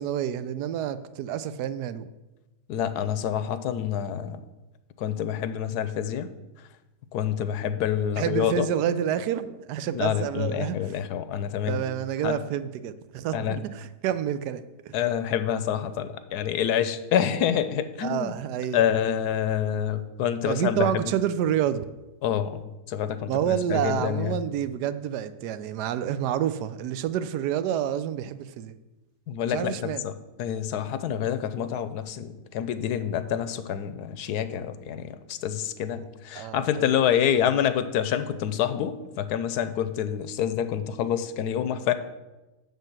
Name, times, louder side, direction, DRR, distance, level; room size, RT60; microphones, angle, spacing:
voice 1, 0.0-2.1 8.2-11.0 11.7-14.9 18.0-18.8 20.4-21.9 23.3-28.8 29.5-30.0 36.3-37.0, right 10 dB, 90° right, 13 dB, 1.2 m, -28 dB
voice 2, 2.7-4.4 5.0-6.3 7.1-8.7 9.9-11.8 12.2-12.4 13.3-13.6 14.9-18.3 18.7-20.9 22.2-22.6 22.9-24.3 29.3-30.1 30.4-41.9, left 9 dB, 80° left, 11 dB, 1.2 m, -27 dB
10.5 x 3.8 x 7.3 m, 1.1 s
omnidirectional pair, 1.7 m